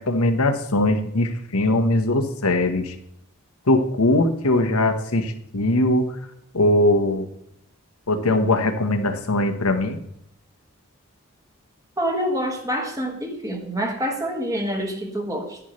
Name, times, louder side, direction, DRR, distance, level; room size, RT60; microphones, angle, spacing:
voice 1, 0.1-2.9 3.7-6.1 6.5-7.2 8.1-10.0, left 1 dB, 85° left, 6 dB, 1.2 m, -20 dB
voice 2, 12.0-15.6, equal, 15° right, 3 dB, 1.6 m, -26 dB
10.5 x 10.0 x 3.2 m, 0.74 s
head